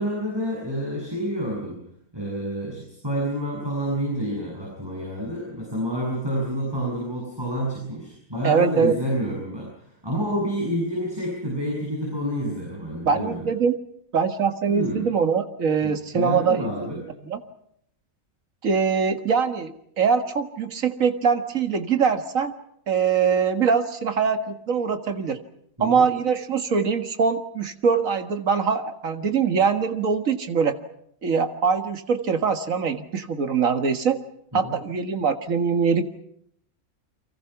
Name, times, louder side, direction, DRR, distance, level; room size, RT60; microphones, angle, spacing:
voice 1, 0.0-1.8 2.1-13.5 14.7-15.1 15.8-17.0 25.8-26.0 34.5-34.7, equal, 15° right, -3 dB, 7.6 m, -28 dB
voice 2, 8.4-9.0 13.1-13.8 14.1-17.4 18.6-22.5 22.9-25.4 25.8-30.8 31.2-34.2 34.5-36.1, right 6 dB, 65° right, 8 dB, 2.0 m, -23 dB
30.0 x 24.0 x 5.9 m, 0.71 s
omnidirectional pair, 1.5 m